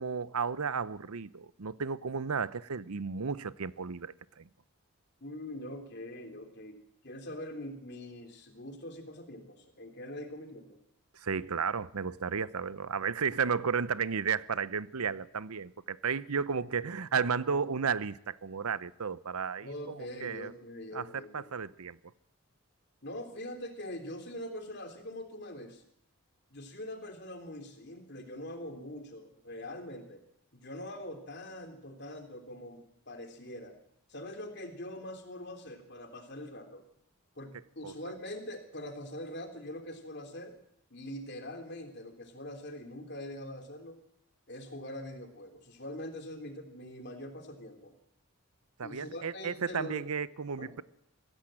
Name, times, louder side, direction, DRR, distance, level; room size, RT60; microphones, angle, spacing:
voice 1, 0.0-4.5 11.1-20.5 20.9-22.0 37.8-37.9 48.8-50.8, right 6 dB, 85° right, 0.7 m, -33 dB
voice 2, 5.2-10.8 19.6-21.5 23.0-25.8 26.5-30.2 30.5-33.7 34.1-36.8 37.3-40.5 40.9-44.0 44.5-47.9 48.8-50.0 50.6-50.7, left 1 dB, 50° left, 3.2 m, -43 dB
23.5 x 16.0 x 7.7 m
head